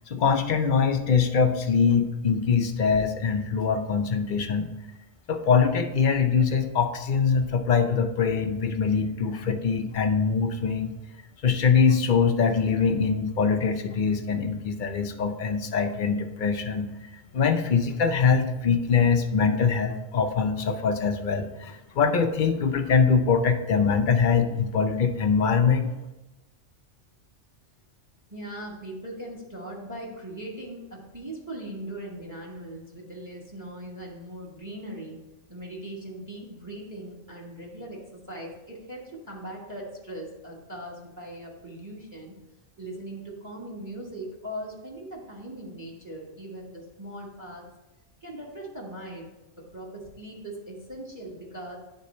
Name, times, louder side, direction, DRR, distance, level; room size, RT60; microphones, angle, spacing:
voice 1, 0.1-4.7 5.3-10.9 11.4-16.9 17.3-25.9, left 5 dB, 50° left, 6 dB, 0.6 m, -23 dB
voice 2, 28.3-35.2 35.5-42.4 42.8-47.6 48.2-49.3 49.7-51.8, right 1 dB, 15° right, -2 dB, 1.2 m, -39 dB
9.6 x 3.7 x 4.1 m, 0.98 s
omnidirectional pair, 1.3 m